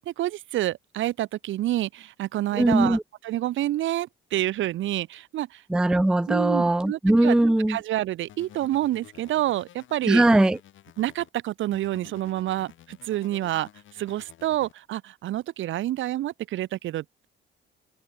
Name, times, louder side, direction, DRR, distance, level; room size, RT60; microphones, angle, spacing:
voice 1, 0.1-3.0 3.2-5.6 6.3-7.4 7.7-10.2 11.0-17.3, right 14 dB, 75° right, 0.8 m, -28 dB
voice 2, 2.5-3.0 5.7-7.8 10.1-10.6, right 1 dB, 5° right, 0.4 m, -20 dB
sound 1, 8.3-11.3 11.7-14.7, left 12 dB, 75° left, 7.5 m, -51 dB
cardioid pair, 90°, 20 cm